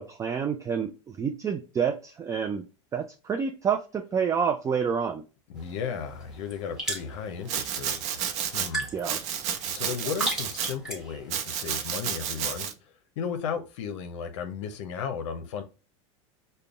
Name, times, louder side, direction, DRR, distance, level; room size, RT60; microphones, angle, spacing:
voice 1, 0.0-2.6 2.9-5.2 8.9-9.2, right 7 dB, 20° right, 0.3 m, -28 dB
voice 2, 5.5-8.9 9.7-15.6, left 6 dB, 80° left, 0.6 m, -35 dB
sound 1, 5.6-11.3, right 1 dB, 5° right, 1.4 m, -37 dB
Domestic sounds home sounds, 7.5-8.7 9.0-10.7 11.3-12.7, right 8 dB, 50° right, 0.7 m, -31 dB
5.1 x 2.2 x 2.3 m
supercardioid pair, 110°, 16 cm